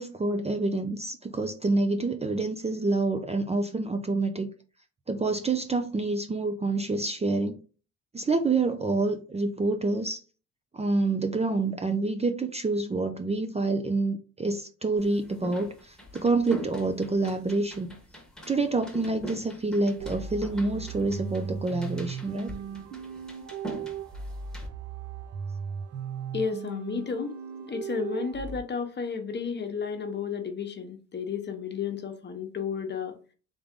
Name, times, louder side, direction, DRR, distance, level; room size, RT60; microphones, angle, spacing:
voice 1, 0.0-4.5 5.1-7.6 8.1-10.2 10.7-17.9 18.5-22.5, right 3 dB, 20° right, 7 dB, 0.5 m, -27 dB
sound 1, 15.0-24.7, right 1 dB, ahead, 1.3 m, -43 dB
sound 2, 20.0-28.6, right 6 dB, 55° right, 0.8 m, -37 dB
voice 2, 26.3-27.4 27.7-33.2, left 6 dB, 35° left, 5 dB, 1.0 m, -32 dB
3.6 x 3.5 x 3.6 m, 0.37 s
cardioid pair, 90°, 30 cm